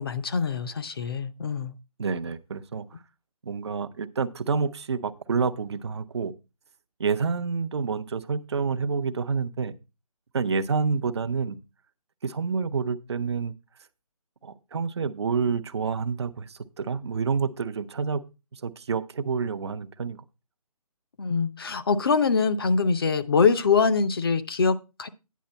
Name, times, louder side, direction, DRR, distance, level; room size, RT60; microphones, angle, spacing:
voice 1, 0.0-1.7 21.2-25.1, left 5 dB, 40° left, 0.6 m, -24 dB
voice 2, 2.0-2.9 3.4-6.3 7.0-9.7 10.3-11.6 12.2-13.5 14.4-18.2 18.5-20.2, right 5 dB, 45° right, 0.6 m, -28 dB
9.3 x 6.6 x 4.2 m
figure-of-eight pair, 160°, 20 cm